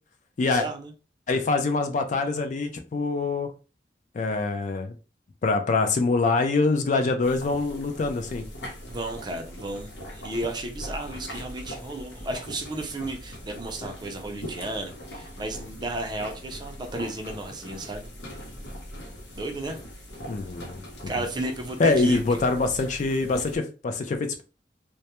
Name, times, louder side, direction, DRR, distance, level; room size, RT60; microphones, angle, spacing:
voice 1, 0.4-0.9 8.9-18.1 19.3-19.8 21.1-22.4, right 2 dB, 25° right, 3 dB, 0.4 m, -33 dB
voice 2, 1.3-3.5 4.1-4.9 5.4-8.4 20.3-20.8 21.8-24.4, left 3 dB, 45° left, 7 dB, 0.4 m, -24 dB
sound 1, 7.2-23.6, equal, 85° left, 0.8 m, -41 dB
2.2 x 2.1 x 2.8 m, 0.33 s
head